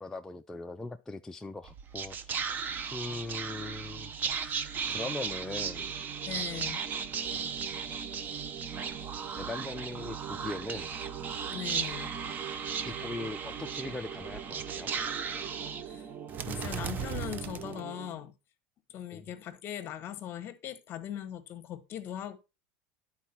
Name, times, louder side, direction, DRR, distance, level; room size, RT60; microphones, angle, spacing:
voice 1, 0.0-2.4 2.9-4.1 4.4-4.5 4.9-5.9 9.4-10.9 12.8-14.9 19.1-19.3, left 3 dB, 10° left, 0.3 m, -40 dB
Whispering, 1.6-18.2, right 6 dB, 30° right, 0.7 m, -36 dB
voice 2, 6.3-6.8 11.5-12.1 15.9-16.1 16.5-18.3 18.9-22.4, left 10 dB, 40° left, 1.0 m, -40 dB
10.0 x 4.4 x 4.3 m
supercardioid pair, 130°, 6 cm